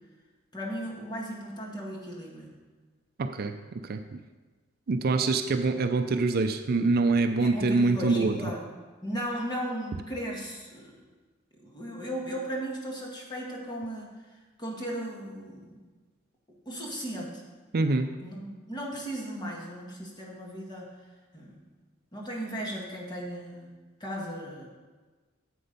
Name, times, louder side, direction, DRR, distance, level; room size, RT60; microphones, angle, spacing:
voice 1, 0.5-2.5 7.4-8.7 9.0-11.0 11.6-14.3 14.6-15.8 16.7-17.4 18.2-20.9 21.3-21.6 22.1-23.7 24.0-24.7, equal, 20° left, -2 dB, 1.8 m, -36 dB
voice 2, 3.2-3.5 3.8-4.2 4.9-8.3 17.7-18.1, right 3 dB, 50° right, 7 dB, 0.5 m, -25 dB
8.4 x 7.8 x 5.2 m, 1.3 s
head